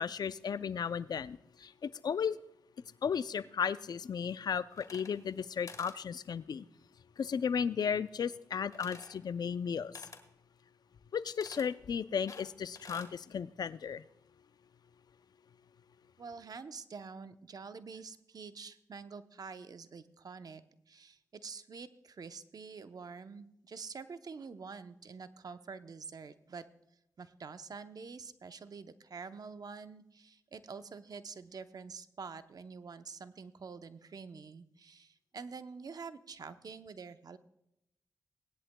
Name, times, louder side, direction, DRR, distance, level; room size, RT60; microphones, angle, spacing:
voice 1, 0.0-2.4 3.0-6.6 7.2-9.9 11.1-14.0, left 7 dB, 70° left, 16 dB, 0.4 m, -35 dB
sound 1, 4.7-5.4 5.7-6.0 8.7-9.2 9.9-10.3 11.4-11.7 12.3-13.1, left 3 dB, 50° left, 1.5 m, -50 dB
voice 2, 16.2-26.6 27.2-37.4, right 5 dB, 60° right, 11 dB, 0.7 m, -47 dB
18.5 x 11.0 x 2.2 m, 0.81 s
supercardioid pair, 40°, 7 cm